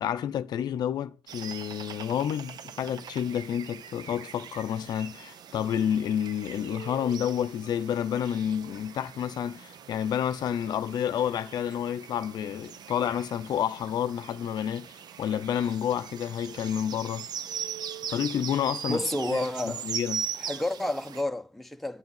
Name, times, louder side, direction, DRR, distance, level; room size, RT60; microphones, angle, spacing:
voice 1, 0.0-14.9 15.2-17.3 18.1-19.0 19.3-20.3, left 9 dB, 70° left, 0.7 m, -29 dB
sound 1, 1.3-21.2, right 7 dB, 65° right, 0.7 m, -40 dB
voice 2, 18.9-19.9 20.4-22.0, left 1 dB, ahead, 1.0 m, -30 dB
9.6 x 8.4 x 7.2 m
cardioid pair, 75°, 7 cm